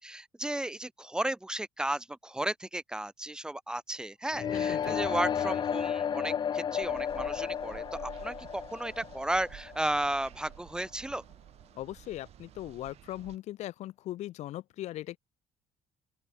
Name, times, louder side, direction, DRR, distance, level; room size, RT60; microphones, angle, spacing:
voice 1, 0.0-11.2, right 1 dB, 5° right, 2.6 m, -34 dB
sound 1, 4.3-10.2, left 8 dB, 35° left, 2.9 m, -33 dB
voice 2, 4.5-5.0 11.8-15.2, left 14 dB, 65° left, 2.6 m, -39 dB
sound 2, 6.8-13.4, right 12 dB, 55° right, 7.3 m, -51 dB
open air
cardioid pair, 155°, 13 cm